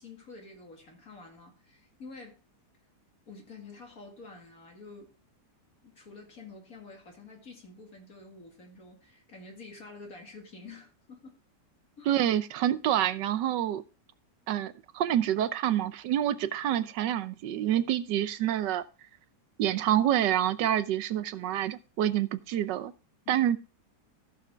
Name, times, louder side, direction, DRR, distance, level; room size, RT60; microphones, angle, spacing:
voice 1, 0.0-2.4 3.3-5.1 5.8-11.3 12.0-12.2 23.2-23.5, left 3 dB, 55° left, 2.5 m, -48 dB
voice 2, 12.1-13.8 14.5-18.8 19.6-22.9 23.3-23.6, right 11 dB, 85° right, 1.4 m, -27 dB
15.0 x 6.8 x 3.4 m
omnidirectional pair, 1.8 m